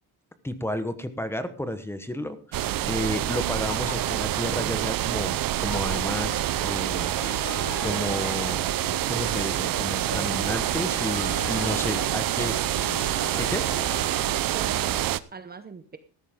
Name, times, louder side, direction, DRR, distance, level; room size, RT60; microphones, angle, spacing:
voice 1, 0.4-7.2 7.8-8.6 9.1-12.6 13.3-13.6, left 1 dB, 5° left, 11 dB, 1.1 m, -32 dB
sound 1, 2.5-15.2, right 13 dB, 55° right, 0.7 m, -27 dB
sound 2, 3.4-4.6 5.2-5.3 5.6-6.6 7.2-7.4 7.8-9.4 9.8-10.6 11.1-12.3 12.9-13.9, left 5 dB, 45° left, 3.9 m, -42 dB
sound 3, 7.0-14.4, left 6 dB, 60° left, 2.0 m, -40 dB
voice 2, 11.6-12.0 14.5-16.0, right 5 dB, 25° right, 9 dB, 0.9 m, -41 dB
14.5 x 13.0 x 3.7 m, 0.40 s
cardioid pair, 155°, 41 cm